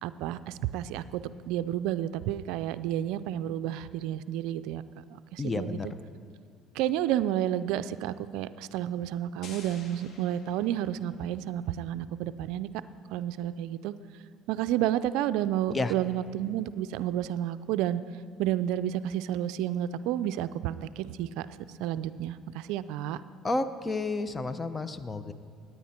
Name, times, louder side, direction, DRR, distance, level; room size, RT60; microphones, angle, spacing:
voice 1, 0.0-4.8 5.1-5.8 6.7-12.7 13.1-13.9 14.5-18.0 18.4-21.5 21.8-23.2, right 12 dB, 80° right, 14 dB, 0.4 m, -31 dB
voice 2, 5.4-5.9 15.7-15.9 23.4-25.3, left 3 dB, 25° left, 12 dB, 0.7 m, -31 dB
sound 1, 9.4-11.2, left 4 dB, 60° left, 1.8 m, -50 dB
17.0 x 9.6 x 4.4 m, 2.2 s
supercardioid pair, 80°, 0 cm